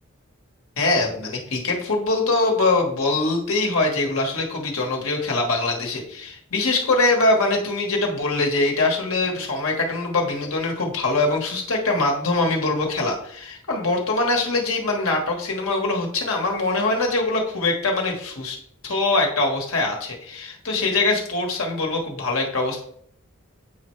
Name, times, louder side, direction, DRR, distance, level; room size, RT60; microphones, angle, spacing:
voice 1, 0.8-18.6 18.8-22.8, left 2 dB, 85° left, 0 dB, 1.4 m, -23 dB
8.2 x 4.4 x 3.2 m, 0.66 s
head